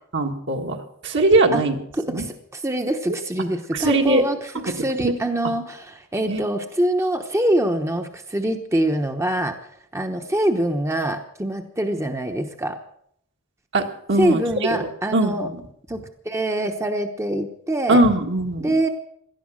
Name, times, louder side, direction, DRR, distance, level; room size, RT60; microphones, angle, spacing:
voice 1, 0.1-1.8 2.1-2.2 3.7-4.2 4.8-5.1 6.3-6.4 13.7-14.4 15.1-15.6 17.9-18.7, right 2 dB, 60° right, 3 dB, 1.8 m, -20 dB
voice 2, 1.9-9.6 9.9-12.8 14.2-15.5 15.9-18.0 18.6-18.9, right 1 dB, 15° right, 5 dB, 1.0 m, -24 dB
18.0 x 12.5 x 6.4 m, 0.69 s
head